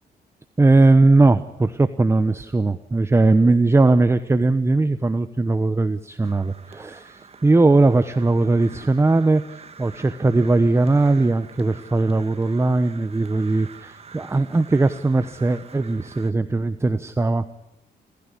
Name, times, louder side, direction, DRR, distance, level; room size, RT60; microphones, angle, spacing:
voice 1, 0.6-17.6, right 2 dB, 15° right, 11 dB, 0.9 m, -19 dB
Crow, 6.2-16.3, right 6 dB, 35° right, 1.5 m, -46 dB
28.0 x 15.5 x 9.9 m, 0.84 s
cardioid pair, 110°, 17 cm